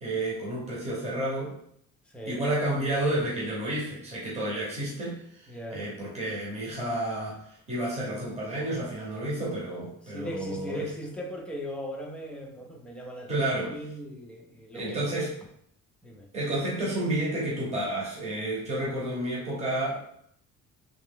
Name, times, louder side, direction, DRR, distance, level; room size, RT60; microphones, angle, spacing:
voice 1, 0.0-1.6 2.3-10.9 13.3-13.8 14.7-15.4 16.3-20.0, right 1 dB, 20° right, -5 dB, 0.9 m, -31 dB
voice 2, 2.1-2.4 5.5-5.8 10.1-15.1 16.0-16.3, equal, 5° left, 0 dB, 0.4 m, -38 dB
3.2 x 2.9 x 3.6 m, 0.70 s
cardioid pair, 175°, 33 cm